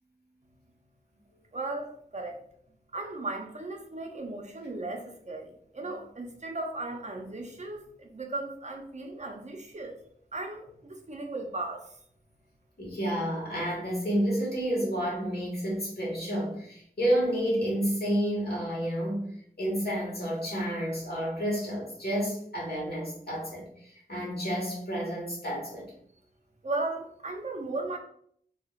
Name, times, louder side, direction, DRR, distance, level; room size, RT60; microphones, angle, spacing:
voice 1, 1.5-2.4 2.9-10.0 10.3-11.9 26.6-28.0, right 2 dB, 45° right, 3 dB, 0.6 m, -36 dB
voice 2, 12.8-25.9, equal, 70° left, -4 dB, 1.5 m, -30 dB
3.5 x 2.8 x 2.3 m, 0.64 s
wide cardioid pair, 60°, 16 cm